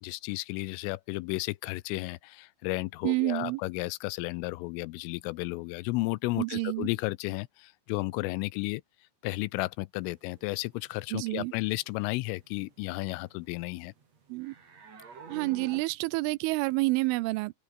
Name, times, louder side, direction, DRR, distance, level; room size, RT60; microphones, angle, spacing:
voice 1, 0.0-8.8 9.2-13.9, left 22 dB, 85° left, 3.2 m, -33 dB
voice 2, 3.0-3.6 6.4-6.9 11.1-11.5 14.3-14.5 15.3-17.6, right 22 dB, 80° right, 3.0 m, -29 dB
sound 1, 10.0-15.8, right 5 dB, 35° right, 4.3 m, -51 dB
open air
omnidirectional pair, 5.8 m